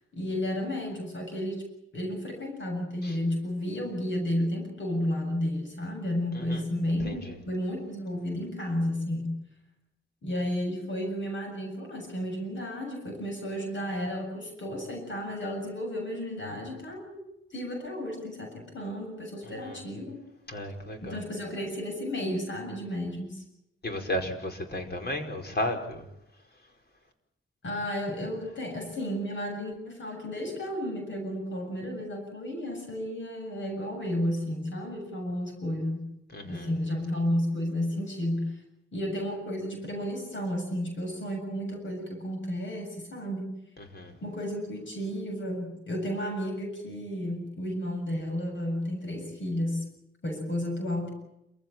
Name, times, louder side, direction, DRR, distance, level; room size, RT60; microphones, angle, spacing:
voice 1, 0.1-1.6 1.9-9.4 10.2-17.2 17.5-20.2 21.0-23.4 27.6-36.1 36.4-38.6 38.9-43.5 44.2-49.9 50.2-51.1, left 1 dB, 70° left, 3 dB, 7.2 m, -32 dB
voice 2, 7.0-7.3 19.4-19.8 20.5-21.2 23.8-26.0 36.3-36.7 43.8-44.1, left 1 dB, 55° left, 4 dB, 5.1 m, -34 dB
27.5 x 16.0 x 8.9 m, 0.85 s
wide cardioid pair, 95°, 20 cm